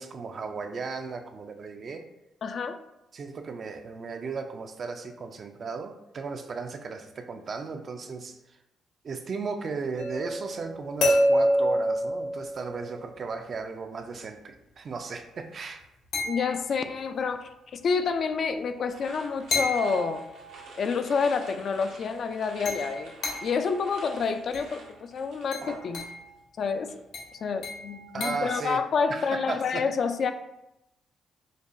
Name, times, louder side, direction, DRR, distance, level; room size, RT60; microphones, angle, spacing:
voice 1, 0.0-2.0 3.1-8.4 9.0-15.8 28.1-28.8 29.1-29.8, right 4 dB, 50° right, 6 dB, 0.4 m, -35 dB
voice 2, 2.4-2.8 16.2-20.3 20.8-23.1 23.4-26.0 26.6-26.9 27.4-30.3, left 5 dB, 55° left, 8 dB, 0.3 m, -28 dB
sound 1, 10.0-13.1 16.1-16.9 19.5-20.7 22.7-23.7 24.5-24.8 25.5-26.2 27.1-28.6, equal, 80° left, 1.2 m, -29 dB
sound 2, 18.9-26.3 26.6-27.0, right 2 dB, 85° right, 0.9 m, -48 dB
5.1 x 2.3 x 2.5 m, 0.88 s
cardioid pair, 90°, 0 cm